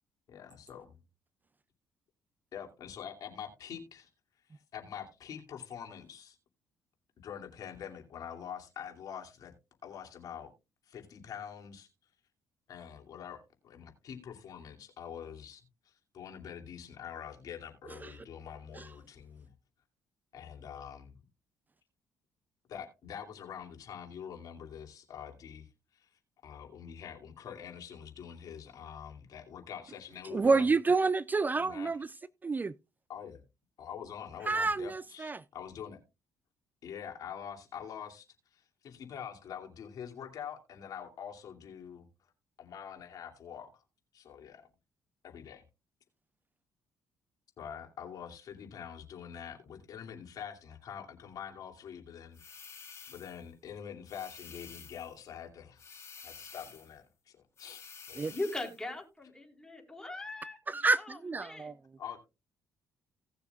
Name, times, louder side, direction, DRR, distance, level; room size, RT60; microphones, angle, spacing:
voice 1, 0.3-1.0 2.5-4.1 4.7-6.4 7.2-9.5 9.8-10.5 10.9-11.9 12.7-13.4 13.6-19.5 20.3-21.1 22.7-25.7 25.9-26.1 26.4-30.7 31.6-31.9 33.1-33.4 33.8-36.0 36.8-38.2 38.5-42.1 42.6-43.8 44.1-44.7 45.2-45.6 47.6-52.7 53.1-55.8 56.2-58.3 62.0-62.2, left 8 dB, 65° left, 2.7 m, -45 dB
voice 2, 30.3-32.1 32.4-32.7 34.5-35.4 58.2-58.3 60.7-61.8, right 3 dB, 25° right, 0.4 m, -29 dB
sound 1, 52.3-53.4 54.1-55.2 55.8-57.0 57.6-58.8, left 6 dB, 40° left, 3.7 m, -50 dB
voice 3, 58.3-61.7, left 2 dB, 10° left, 4.2 m, -40 dB
18.0 x 6.8 x 2.3 m
supercardioid pair, 60°, 7 cm